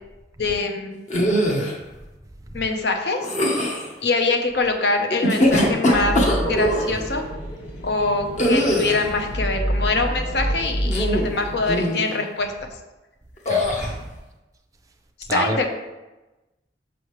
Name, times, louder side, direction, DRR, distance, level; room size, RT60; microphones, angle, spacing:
voice 1, 0.4-1.0 2.5-3.3 4.0-6.2 6.4-7.3 7.8-12.7 15.3-15.7, left 3 dB, 65° left, 4 dB, 0.8 m, -24 dB
sound 1, 1.1-1.8 3.2-3.9 5.1-6.9 8.4-9.1 10.8-11.4 11.7-12.1 13.5-13.9, equal, 45° left, 1.0 m, -21 dB
sound 2, 5.9-11.7, equal, 85° left, 2.0 m, -28 dB
voice 2, 13.5-14.0 15.3-15.7, right 2 dB, 20° right, 4 dB, 0.5 m, -27 dB
6.2 x 5.7 x 3.1 m, 1.1 s
head